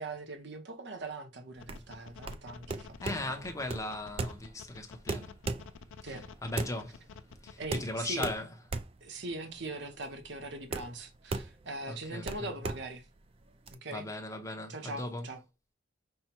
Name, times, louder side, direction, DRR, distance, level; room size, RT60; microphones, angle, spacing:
voice 1, 0.0-3.4 6.0-6.2 7.6-8.3 9.0-13.1 13.7-14.1 14.7-15.4, right 2 dB, 60° right, 0.9 m, -41 dB
sound 1, 1.6-7.7, left 5 dB, 90° left, 0.4 m, -50 dB
sound 2, 1.6-13.7, right 3 dB, 30° right, 0.4 m, -39 dB
voice 2, 3.0-5.4 6.0-7.1 7.4-8.5 11.9-12.5 13.9-15.3, left 2 dB, 15° left, 0.8 m, -38 dB
5.6 x 2.2 x 4.4 m
head